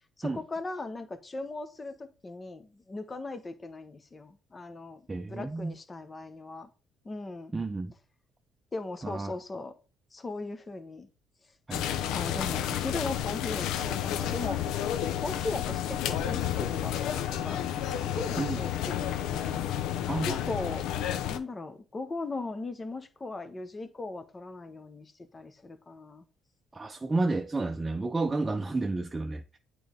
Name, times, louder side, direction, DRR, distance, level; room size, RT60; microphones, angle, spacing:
voice 1, 0.2-5.0 5.3-6.7 7.0-7.5 8.7-9.7 10.1-11.1 12.1-14.6 15.2-17.6 18.0-19.6 20.3-20.9 21.3-26.2, left 2 dB, 30° left, 1.0 m, -38 dB
voice 2, 5.1-5.7 7.5-7.9 9.0-9.3 11.7-11.8 18.4-18.6 20.1-20.5 26.7-29.6, right 3 dB, 25° right, 0.6 m, -31 dB
sound 1, 11.7-21.4, left 10 dB, 75° left, 0.6 m, -31 dB
8.6 x 3.9 x 3.5 m
supercardioid pair, 65°, 0 cm